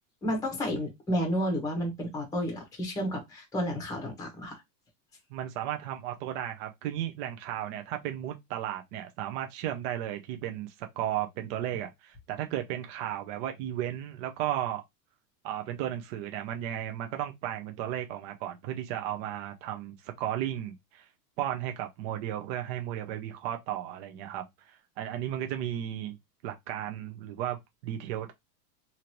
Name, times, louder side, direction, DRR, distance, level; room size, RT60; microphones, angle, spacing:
voice 1, 0.2-4.6, equal, 5° left, 0.9 m, -31 dB
voice 2, 5.3-14.8 15.4-21.1 21.4-26.2 26.4-28.3, right 11 dB, 40° right, 0.5 m, -34 dB
2.9 x 2.6 x 2.8 m
supercardioid pair, 140°, 49 cm